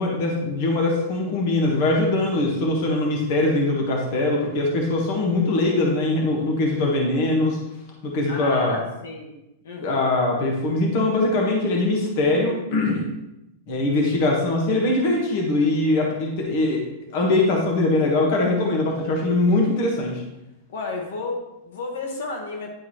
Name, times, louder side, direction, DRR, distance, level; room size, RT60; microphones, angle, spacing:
voice 1, 0.0-7.6 8.0-8.8 9.8-13.0 13.7-16.8 17.1-20.2, left 2 dB, 45° left, 0 dB, 1.4 m, -22 dB
voice 2, 8.3-9.3 9.6-10.0 20.7-22.7, left 3 dB, 75° left, 1 dB, 1.5 m, -32 dB
10.0 x 4.7 x 3.1 m, 0.91 s
supercardioid pair, 170°, 0 cm